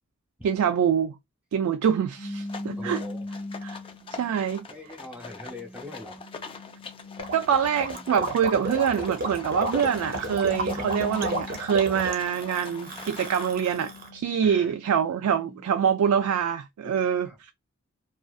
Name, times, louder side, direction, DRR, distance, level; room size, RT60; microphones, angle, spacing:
voice 1, 0.4-1.2 1.5-3.0 3.6-3.8 4.1-4.7 7.3-17.5, right 8 dB, 75° right, 0.3 m, -25 dB
sound 1, 2.2-4.3 5.0-8.1 9.2-12.2 12.7-15.6, left 2 dB, 85° left, 0.8 m, -41 dB
sound 2, 2.4-13.5, left 5 dB, 25° left, 0.3 m, -43 dB
voice 2, 2.8-3.2 3.8-3.9 4.7-6.2 14.4-14.7 16.8-17.4, left 2 dB, 5° right, 0.8 m, -42 dB
Gurgling, 7.2-14.1, right 1 dB, 40° right, 0.6 m, -32 dB
2.5 x 2.4 x 2.3 m
head